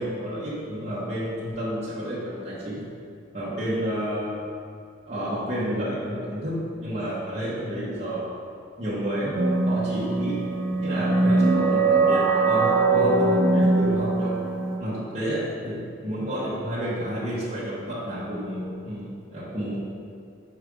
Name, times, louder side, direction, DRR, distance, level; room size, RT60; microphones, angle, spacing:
voice 1, 0.0-2.8 3.3-4.4 5.0-8.4 8.8-9.4 9.7-10.4 10.8-14.4 14.8-19.8, equal, 35° right, -9 dB, 1.0 m, -30 dB
sound 1, 9.3-14.8, right 3 dB, 85° right, 1.1 m, -21 dB
5.0 x 4.8 x 5.0 m, 2.3 s
head